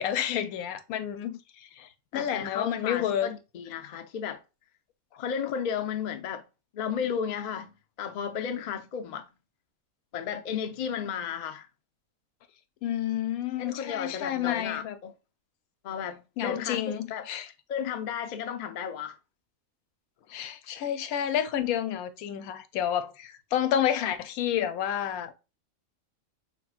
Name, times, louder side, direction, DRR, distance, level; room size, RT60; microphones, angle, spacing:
voice 1, 0.0-3.3 12.8-15.0 16.4-17.5 20.3-25.3, left 10 dB, 90° left, 1.1 m, -30 dB
voice 2, 2.1-4.4 5.2-6.4 6.7-9.3 10.1-11.7 13.6-15.1 15.8-17.3 17.7-19.1, left 7 dB, 65° left, 0.4 m, -33 dB
4.7 x 3.6 x 2.3 m
omnidirectional pair, 1.5 m